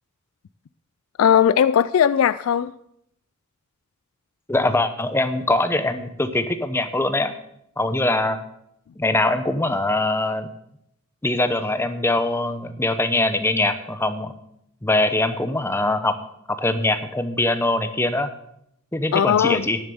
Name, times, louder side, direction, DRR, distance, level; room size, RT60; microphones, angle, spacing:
voice 1, 1.2-2.7 19.1-19.7, left 8 dB, 85° left, 15 dB, 0.3 m, -18 dB
voice 2, 4.5-7.3 7.8-8.4 9.0-10.5 11.2-14.3 14.8-16.1 16.6-18.3 18.9-19.8, left 2 dB, 10° left, 10 dB, 0.7 m, -22 dB
10.5 x 7.1 x 6.9 m, 0.75 s
head